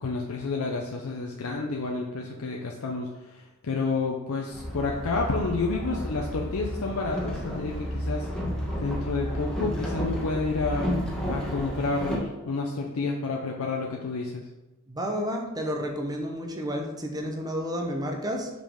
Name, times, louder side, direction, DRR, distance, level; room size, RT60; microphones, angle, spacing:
voice 1, 0.0-8.3 8.8-10.9 11.3-14.5, left 3 dB, 70° left, 0 dB, 0.6 m, -30 dB
Boat Water vehicle, 4.5-12.2, equal, 5° left, 1.2 m, -31 dB
voice 2, 14.9-18.5, equal, 15° right, 2 dB, 0.8 m, -31 dB
5.2 x 5.1 x 3.7 m, 1.1 s
head